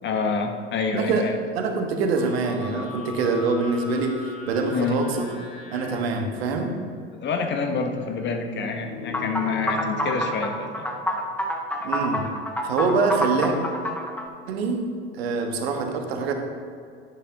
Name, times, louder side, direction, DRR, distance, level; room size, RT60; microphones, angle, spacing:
voice 1, 0.0-1.4 4.7-5.0 7.2-10.9, left 4 dB, 35° left, 5 dB, 1.1 m, -27 dB
voice 2, 0.9-1.3 1.5-5.1 5.7-6.7 11.8-12.3 12.6-13.5 14.5-14.9 15.1-16.3, right 4 dB, 65° right, 4 dB, 1.3 m, -25 dB
sound 1, 2.2-6.4 8.5-10.3, left 4 dB, 50° left, 1.5 m, -39 dB
sound 2, 9.1-14.3, equal, 5° left, 1.0 m, -27 dB
11.0 x 10.0 x 2.8 m, 2.3 s
figure-of-eight pair, 75°, 33 cm